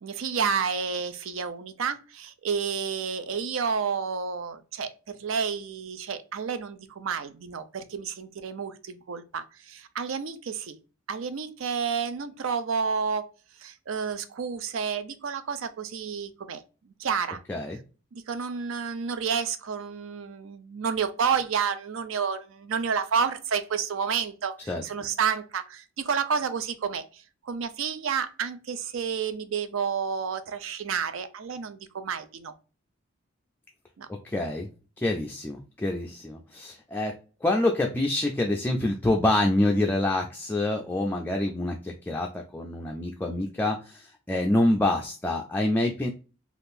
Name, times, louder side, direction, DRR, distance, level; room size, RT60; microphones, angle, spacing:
voice 1, 0.0-10.8 11.1-13.3 13.6-17.4 18.1-32.5 34.0-34.1, right 6 dB, 70° right, 11 dB, 0.5 m, -30 dB
voice 2, 34.2-34.7 35.0-37.2 37.4-46.1, left 1 dB, 10° left, 1 dB, 0.3 m, -26 dB
3.6 x 2.4 x 2.6 m, 0.34 s
head